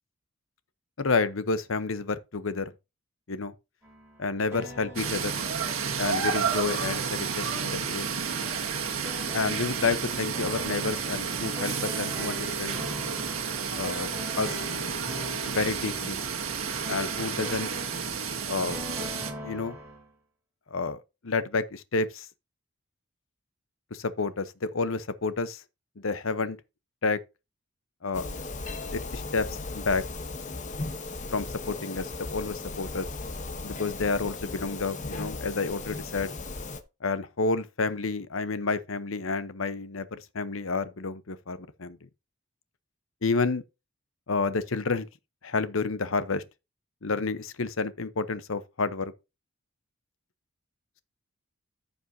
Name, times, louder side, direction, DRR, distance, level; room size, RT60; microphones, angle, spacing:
voice 1, 1.0-2.7 3.3-3.5 4.2-5.4 6.0-8.0 9.3-12.8 13.7-14.1 14.4-14.6 15.4-16.2 16.9-17.7 18.5-18.8 19.4-19.8 20.7-22.3 23.9-25.6 26.0-26.6 27.0-27.2 28.0-28.3 28.9-30.0 31.3-33.1 33.6-36.3 37.0-42.0 43.2-43.6 44.3-45.1 45.4-46.4 47.0-49.1, left 4 dB, 70° left, 0.9 m, -30 dB
sound 1, 3.8-6.7 9.0-20.1, left 1 dB, 10° right, 4.1 m, -42 dB
sound 2, 5.0-19.3, right 6 dB, 70° right, 1.8 m, -31 dB
sound 3, 28.1-36.8, left 3 dB, 35° left, 1.0 m, -37 dB
14.0 x 5.4 x 2.7 m
head